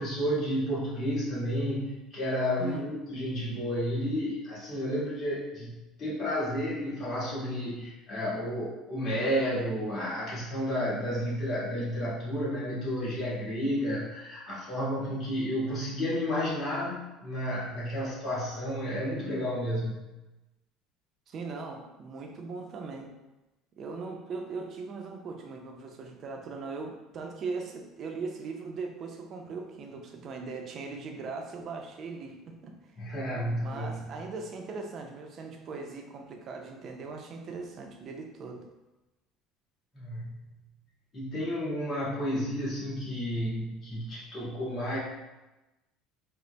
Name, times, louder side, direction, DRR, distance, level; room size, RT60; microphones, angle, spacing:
voice 1, 0.0-20.0 33.0-34.2 39.9-40.5 41.1-45.0, equal, 35° left, -8 dB, 1.5 m, -31 dB
voice 2, 21.3-23.1 23.8-32.7 33.6-38.6, right 4 dB, 40° right, 3 dB, 0.5 m, -39 dB
3.9 x 2.1 x 3.2 m, 1.0 s
cardioid pair, 140°, 0 cm